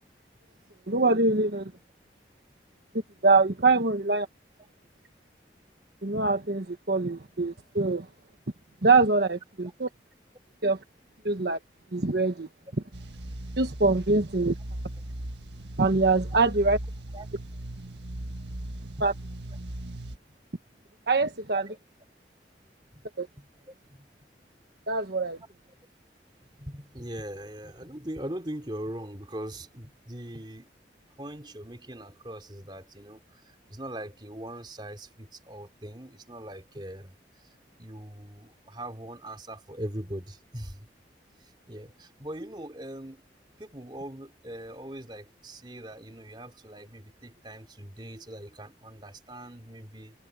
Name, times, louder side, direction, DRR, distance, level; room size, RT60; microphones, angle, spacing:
voice 1, 0.9-1.6 3.2-4.3 6.0-8.0 8.8-9.9 10.6-10.8 11.2-11.6 11.9-12.5 13.6-14.5 15.8-16.8 19.0-19.1 21.1-21.6 23.2-23.3 24.9-25.4, right 3 dB, 65° right, 1.3 m, -24 dB
sound 1, 12.9-20.2, right 1 dB, 85° right, 1.6 m, -38 dB
voice 2, 26.6-30.7 31.2-37.1 37.4-37.5 37.8-40.9 41.4-43.2 43.6-50.3, right 1 dB, 25° right, 3.3 m, -41 dB
head